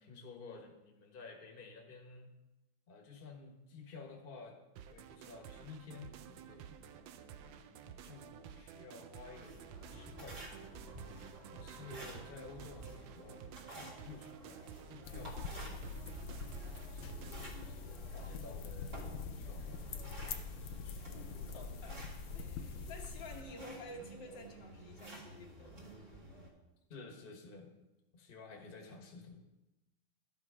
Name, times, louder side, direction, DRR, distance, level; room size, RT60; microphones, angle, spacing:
voice 1, 0.0-2.3 2.9-4.6 4.9-10.7 11.0-11.1 11.5-16.1 16.8-19.0 19.3-19.8 23.3-23.4 26.9-27.7 28.1-29.4, left 4 dB, 30° left, 2 dB, 1.3 m, -53 dB
sound 1, 4.8-17.7, right 9 dB, 80° right, 1.3 m, -52 dB
sound 2, 9.3-26.5, right 1 dB, 60° right, 2.5 m, -52 dB
sound 3, 15.0-23.4, left 5 dB, 90° left, 1.5 m, -44 dB
voice 2, 20.8-22.0 22.3-25.8, left 2 dB, 70° left, 1 dB, 1.8 m, -51 dB
12.5 x 5.9 x 4.8 m, 1.0 s
omnidirectional pair, 2.1 m